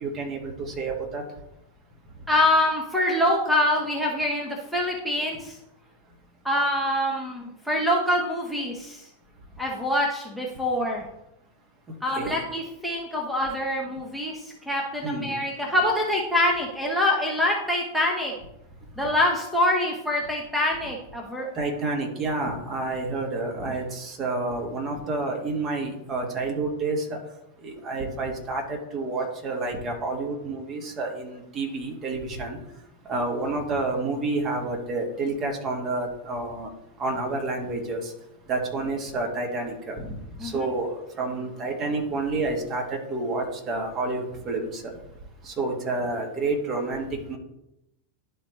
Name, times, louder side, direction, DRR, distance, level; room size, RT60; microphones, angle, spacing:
voice 1, 0.0-1.2 12.2-12.4 15.0-15.3 21.5-27.0 27.6-32.6 33.1-36.7 37.0-38.0 38.5-40.1 40.4-40.9 41.2-44.9 45.5-47.4, right 3 dB, 30° right, 1 dB, 1.7 m, -29 dB
voice 2, 2.3-5.6 6.4-9.0 9.6-11.0 12.0-18.3 19.0-21.5 40.4-40.7, left 1 dB, ahead, -2 dB, 1.1 m, -25 dB
11.5 x 4.3 x 3.2 m, 0.87 s
figure-of-eight pair, 90°, 0 cm